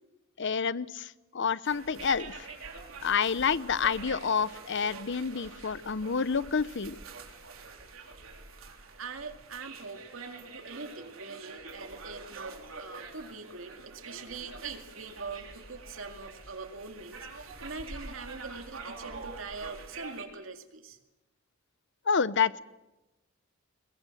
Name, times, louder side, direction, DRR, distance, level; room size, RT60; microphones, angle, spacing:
voice 1, 0.4-2.5 3.0-6.9 22.1-22.6, left 6 dB, 60° left, 18 dB, 0.7 m, -28 dB
sound 1, 1.6-20.2, right 4 dB, 90° right, 3.8 m, -46 dB
voice 2, 9.0-21.0, right 4 dB, 70° right, 6 dB, 2.4 m, -43 dB
23.0 x 22.0 x 7.8 m, 1.0 s
head